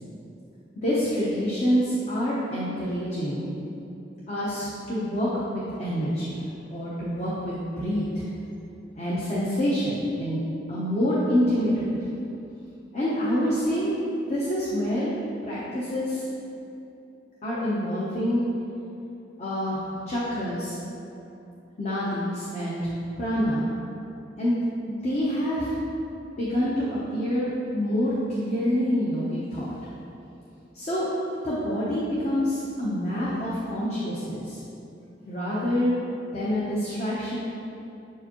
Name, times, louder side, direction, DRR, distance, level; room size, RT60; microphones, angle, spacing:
voice 1, 0.7-3.5 4.3-6.4 6.7-8.3 9.0-10.4 10.7-11.9 12.9-13.9 14.3-15.1 15.4-16.2 17.4-18.4 19.4-20.8 21.8-22.8 23.2-23.6 24.4-24.6 24.8-25.7 26.4-29.7 30.7-31.1 31.4-34.6 35.3-35.9 36.3-37.4, equal, 35° left, -8 dB, 0.8 m, -27 dB
7.0 x 4.7 x 3.0 m, 2.8 s
head